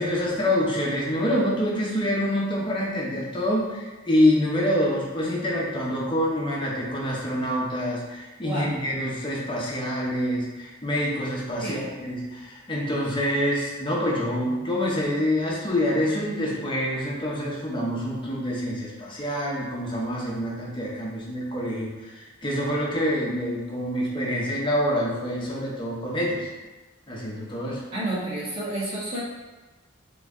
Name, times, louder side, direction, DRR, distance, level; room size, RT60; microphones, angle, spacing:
voice 1, 0.0-26.5 27.1-27.8, equal, 25° left, -4 dB, 0.8 m, -26 dB
voice 2, 8.4-8.7 11.6-11.9 27.9-29.2, right 1 dB, 30° right, -8 dB, 1.3 m, -30 dB
3.9 x 3.1 x 3.6 m, 1.2 s
head